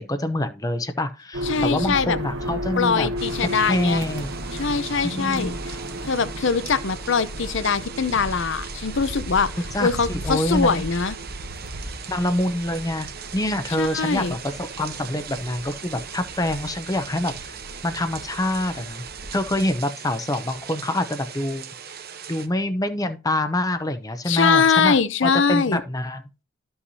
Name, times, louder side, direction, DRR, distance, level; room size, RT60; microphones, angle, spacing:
voice 1, 0.0-3.1 3.4-4.3 5.0-5.6 9.7-10.8 12.1-13.1 13.3-17.6 17.8-19.0 19.3-21.7 22.3-25.0 25.2-26.2, left 1 dB, 20° left, 0.6 m, -26 dB
sound 1, 1.3-19.7, equal, 70° right, 1.2 m, -35 dB
voice 2, 1.4-2.2 2.8-4.0 4.5-5.8 6.0-9.5 9.8-11.2 13.8-14.4 24.3-25.8, left 5 dB, 60° left, 0.7 m, -22 dB
sound 2, 3.2-22.5, right 8 dB, 50° right, 0.9 m, -39 dB
13.0 x 5.6 x 2.7 m
head